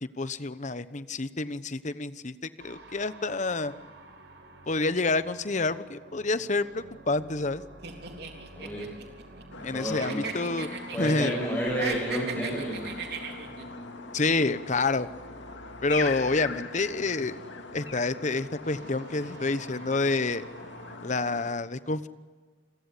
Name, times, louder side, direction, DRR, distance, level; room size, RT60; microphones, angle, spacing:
voice 1, 0.2-2.3 2.6-3.7 4.7-7.6 9.6-10.7 11.0-11.3 14.1-15.1 15.8-17.4 17.7-20.5 21.0-22.1, left 3 dB, 40° left, 13 dB, 1.0 m, -28 dB
sound 1, 2.6-21.0, right 2 dB, 80° right, 5.4 m, -50 dB
sound 2, 7.8-9.7 10.0-11.4 11.7-13.6, right 5 dB, 60° right, 3.7 m, -37 dB
voice 2, 8.5-8.8 9.5-10.2 10.9-12.9, equal, 10° left, -4 dB, 7.6 m, -30 dB
sound 3, 9.5-21.6, left 4 dB, 85° left, 2.4 m, -41 dB
29.5 x 22.5 x 8.5 m, 1.4 s
head